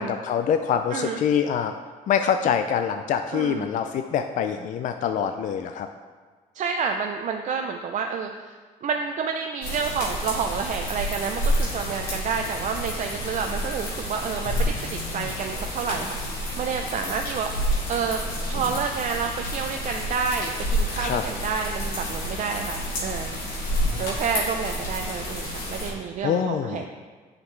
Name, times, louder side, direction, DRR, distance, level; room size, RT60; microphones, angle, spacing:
voice 1, 0.0-1.7 2.1-5.9 15.0-15.3 20.9-21.2 23.9-24.0 25.9-26.9, left 8 dB, 60° left, 7 dB, 0.4 m, -25 dB
voice 2, 3.3-3.7 6.5-8.5 8.8-18.2 18.5-23.4 24.0-26.9, right 6 dB, 60° right, 4 dB, 0.5 m, -29 dB
sound 1, 9.6-25.9, equal, 85° left, 2.2 m, -29 dB
9.7 x 5.0 x 3.2 m, 1.4 s
cardioid pair, 100°, 15 cm